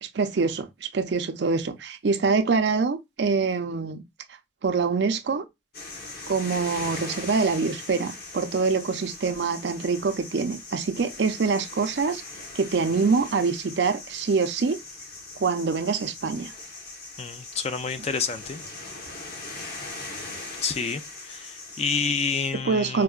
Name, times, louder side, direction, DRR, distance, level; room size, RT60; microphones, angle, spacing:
voice 1, 0.0-4.0 4.6-5.4 6.3-12.2 12.5-14.8 15.4-16.5 22.7-23.0, right 4 dB, 60° right, 0.5 m, -25 dB
sound 1, 5.7-22.5, left 3 dB, 50° left, 1.0 m, -40 dB
voice 2, 17.2-18.6 20.6-23.0, left 5 dB, 35° left, 0.3 m, -29 dB
4.6 x 2.1 x 2.3 m
head